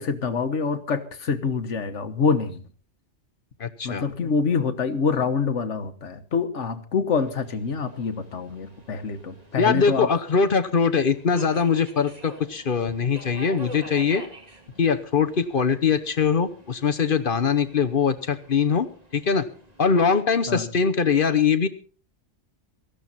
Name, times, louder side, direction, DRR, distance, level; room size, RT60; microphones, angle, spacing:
voice 1, 0.0-2.6 3.8-10.1 20.5-20.7, left 5 dB, 80° left, 9 dB, 1.6 m, -26 dB
voice 2, 3.6-4.0 9.6-14.2 14.8-18.9 19.1-19.5 19.8-21.7, left 6 dB, 50° left, 10 dB, 1.0 m, -22 dB
Subway metro underground, 7.2-20.0, right 1 dB, 35° right, 2.3 m, -47 dB
17.0 x 14.0 x 4.2 m, 0.42 s
omnidirectional pair, 1.2 m